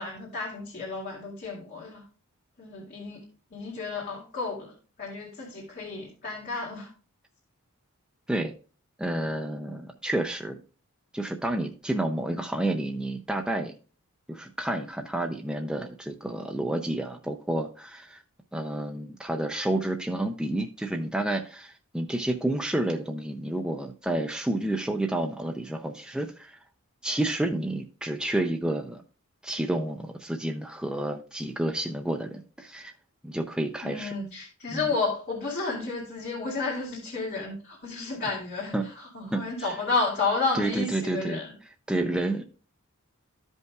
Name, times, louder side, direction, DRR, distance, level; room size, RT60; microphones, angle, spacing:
voice 1, 0.0-2.0 2.6-3.2 3.5-4.7 5.0-6.9 33.8-41.5, left 3 dB, 45° left, 2.3 m, -31 dB
voice 2, 9.0-10.6 11.1-13.7 14.3-18.2 18.5-26.6 27.0-29.0 29.4-32.9 33.2-34.1 34.7-34.8 38.7-38.9 39.3-39.7 40.5-41.4 41.9-42.4, right 1 dB, 5° right, 0.5 m, -30 dB
14.0 x 5.4 x 2.3 m
head